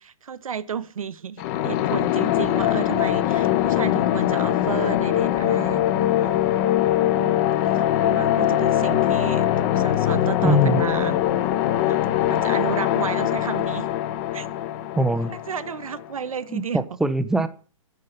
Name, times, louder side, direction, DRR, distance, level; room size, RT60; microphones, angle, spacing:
voice 1, 0.0-6.4 7.0-7.5 8.0-11.2 11.8-12.0 12.3-13.9 14.3-14.5 15.5-16.8, right 7 dB, 80° right, 14 dB, 1.1 m, -32 dB
sound 1, 1.4-16.1, left 12 dB, 30° left, 0.9 m, -22 dB
voice 2, 10.4-10.8 15.0-15.3 16.5-17.5, right 1 dB, 5° right, 11 dB, 0.5 m, -22 dB
10.5 x 6.4 x 8.8 m, 0.41 s
hypercardioid pair, 145°, 17 cm